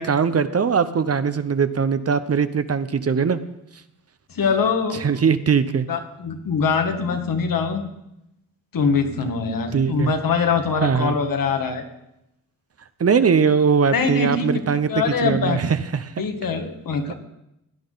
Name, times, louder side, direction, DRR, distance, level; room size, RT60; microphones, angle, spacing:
voice 1, 0.0-3.4 5.0-5.9 9.7-10.1 10.8-11.2 13.0-14.9 15.2-16.0, right 6 dB, 45° right, 12 dB, 0.8 m, -20 dB
voice 2, 4.3-5.0 5.9-7.8 8.7-11.8 13.9-14.6 14.9-15.6 16.2-17.1, left 5 dB, 70° left, 5 dB, 1.8 m, -23 dB
16.5 x 10.0 x 4.0 m, 0.84 s
cardioid pair, 65°, 35 cm